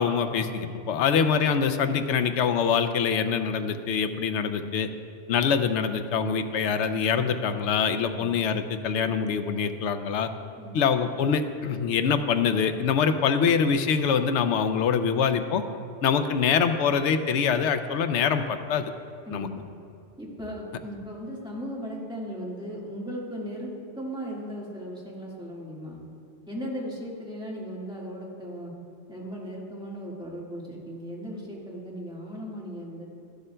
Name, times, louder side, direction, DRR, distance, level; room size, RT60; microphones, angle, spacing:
voice 1, 0.0-4.9 5.3-10.3 10.7-15.6 16.0-18.9 19.3-19.5, left 6 dB, 80° left, 9 dB, 0.9 m, -24 dB
voice 2, 19.3-19.6 20.2-26.0 26.5-28.7 29.1-33.1, equal, 5° right, -5 dB, 1.6 m, -37 dB
12.5 x 12.0 x 2.2 m, 2.4 s
omnidirectional pair, 1.2 m